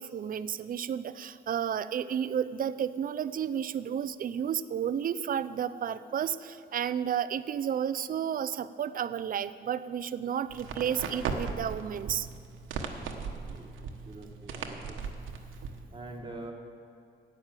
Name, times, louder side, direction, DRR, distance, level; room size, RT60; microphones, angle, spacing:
voice 1, 0.0-12.3, right 8 dB, 45° right, 15 dB, 0.5 m, -32 dB
sound 1, 10.5-15.8, right 5 dB, 85° right, 1.2 m, -38 dB
voice 2, 14.1-15.0 15.9-16.5, right 2 dB, 25° right, 0 dB, 1.4 m, -44 dB
11.5 x 9.0 x 7.5 m, 2.5 s
cardioid pair, 90°, 20 cm